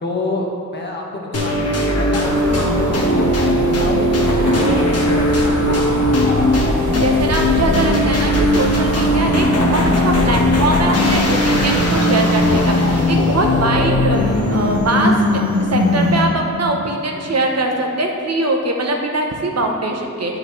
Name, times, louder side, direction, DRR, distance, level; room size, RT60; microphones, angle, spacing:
voice 1, 0.0-5.8, left 2 dB, 35° left, -1 dB, 1.2 m, -28 dB
sound 1, 1.3-16.5, left 1 dB, 50° left, 1.2 m, -17 dB
Pebble Beach, 2.2-13.1, right 5 dB, 75° right, 0.4 m, -28 dB
sound 2, 4.2-16.4, left 1 dB, 75° left, 1.4 m, -30 dB
voice 2, 7.0-15.4 15.7-20.4, right 2 dB, 55° right, 2 dB, 1.0 m, -21 dB
10.5 x 4.9 x 3.2 m, 2.5 s
wide cardioid pair, 70°, 31 cm